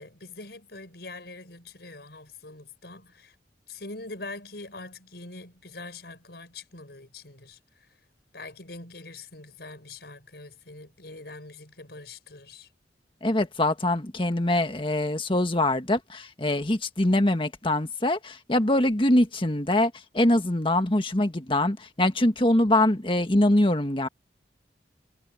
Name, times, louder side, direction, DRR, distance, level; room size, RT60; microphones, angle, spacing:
voice 1, 0.0-3.3 3.7-7.6 8.3-12.7, left 2 dB, 65° left, 6.7 m, -43 dB
voice 2, 13.2-24.1, left 1 dB, 30° left, 1.6 m, -23 dB
head